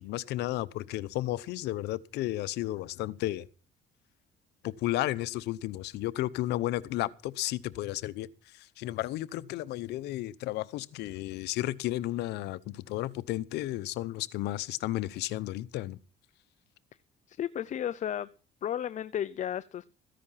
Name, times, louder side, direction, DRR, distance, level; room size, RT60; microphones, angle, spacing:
voice 1, 0.0-3.5 4.6-8.3 8.8-16.0, left 16 dB, 85° left, 0.9 m, -33 dB
voice 2, 17.3-18.3 18.6-19.8, left 10 dB, 45° left, 0.6 m, -33 dB
14.5 x 10.5 x 5.7 m
cardioid pair, 110°, 17 cm